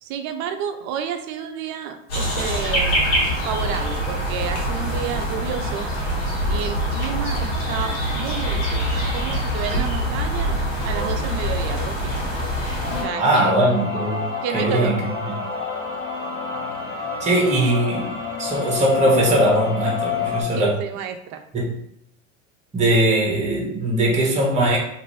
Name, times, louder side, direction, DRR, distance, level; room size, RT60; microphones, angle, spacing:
voice 1, 0.0-3.0 3.4-5.9 6.5-10.6 10.8-12.1 12.9-13.6 14.4-15.0 20.5-21.4, right 8 dB, 45° right, 7 dB, 0.5 m, -30 dB
sound 1, 2.1-13.0, equal, 60° left, 1.3 m, -24 dB
sound 2, 12.8-20.4, left 6 dB, 30° left, 1.0 m, -28 dB
voice 2, 13.2-15.0 17.2-18.1 18.4-20.8 21.5-21.8 22.7-24.8, right 1 dB, 20° right, -3 dB, 1.1 m, -20 dB
2.6 x 2.5 x 3.1 m, 0.74 s
hypercardioid pair, 95°, 39 cm